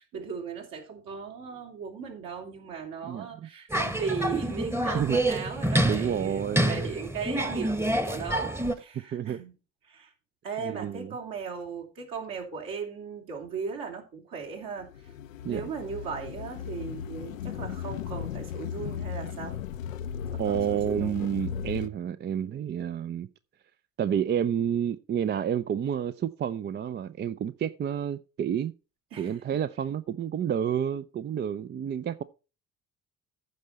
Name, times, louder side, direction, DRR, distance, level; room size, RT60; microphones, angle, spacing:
voice 1, 0.0-9.5 9.8-10.1 10.4-15.1 15.4-19.6 20.3-21.1 29.1-29.4, right 6 dB, 60° right, 3.0 m, -37 dB
voice 2, 3.0-3.5 4.9-5.2 5.8-6.9 9.1-9.4 10.6-11.1 15.4-15.6 20.4-23.3 24.0-28.7 29.2-32.2, right 9 dB, 30° right, 0.5 m, -30 dB
sound 1, 3.7-8.7, right 1 dB, 5° right, 1.1 m, -28 dB
sound 2, 14.8-21.9, left 8 dB, 85° left, 0.6 m, -36 dB
14.5 x 5.4 x 4.1 m
figure-of-eight pair, 50°, 38 cm